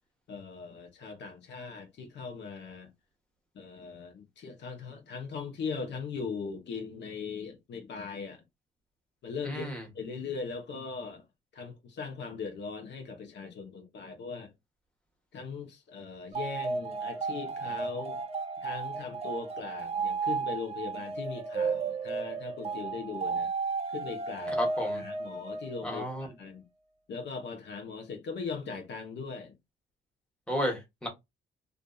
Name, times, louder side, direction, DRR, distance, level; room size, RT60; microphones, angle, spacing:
voice 1, 0.3-2.9 3.5-8.4 9.2-11.2 11.5-14.5 15.3-18.2 18.6-23.5 23.9-24.6 24.9-26.6 27.1-29.5, left 5 dB, 65° left, 0.9 m, -39 dB
voice 2, 9.4-9.8 24.6-25.0 25.8-26.3 30.5-31.1, equal, 5° left, 1.2 m, -32 dB
sound 1, 16.3-26.1, right 4 dB, 30° right, 0.6 m, -34 dB
2.6 x 2.5 x 2.3 m
cardioid pair, 90°, 20 cm